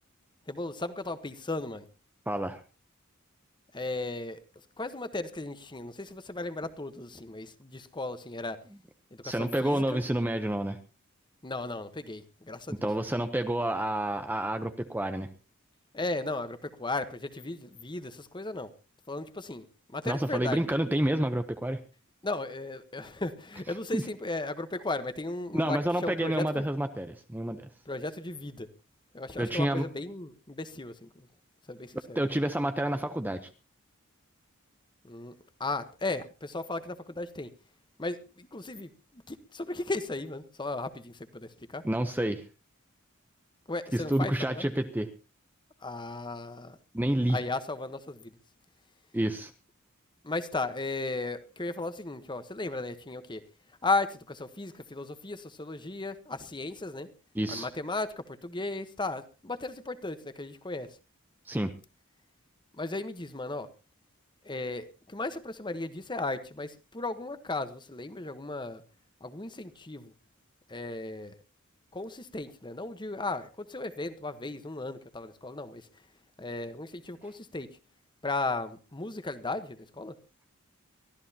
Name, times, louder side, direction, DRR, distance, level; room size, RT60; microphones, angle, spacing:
voice 1, 0.5-1.9 3.7-4.4 4.8-8.6 9.1-10.0 11.4-12.8 15.9-18.7 19.1-20.8 22.2-26.7 27.9-28.7 29.1-31.3 31.7-32.2 35.0-35.3 35.6-37.5 38.0-41.8 43.7-44.7 45.8-46.8 47.3-48.3 50.2-53.4 53.8-57.1 57.5-61.0 62.8-63.7 64.4-68.8 69.2-70.1 70.7-71.3 71.9-75.9 76.4-77.7 78.2-80.2, left 2 dB, 20° left, 11 dB, 1.1 m, -35 dB
voice 2, 2.3-2.6 9.2-10.8 12.8-15.3 20.1-21.8 23.9-24.0 25.5-27.7 29.4-29.9 32.2-33.5 41.8-42.4 43.9-45.1 46.9-47.4 49.1-49.5 57.3-57.7 61.5-61.7, right 1 dB, 10° right, 8 dB, 0.7 m, -29 dB
23.5 x 14.0 x 2.9 m, 0.31 s
head